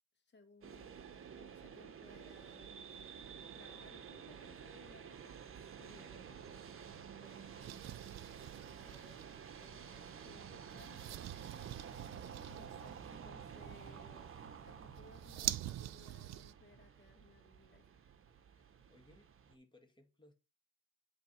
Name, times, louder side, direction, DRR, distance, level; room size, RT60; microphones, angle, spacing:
voice 1, 0.1-2.7 3.5-5.5 5.8-6.5 7.2-8.1 8.8-9.3 9.6-11.0 11.7-12.0 12.5-14.3 14.6-18.0, left 2 dB, 35° left, 2.0 m, -62 dB
sound 1, 0.6-19.5, right 7 dB, 45° right, 0.9 m, -51 dB
sound 2, 7.6-16.5, right 14 dB, 65° right, 0.5 m, -46 dB
voice 2, 18.5-20.3, left 1 dB, 15° left, 2.0 m, -66 dB
8.5 x 3.5 x 4.4 m
cardioid pair, 90°, 30 cm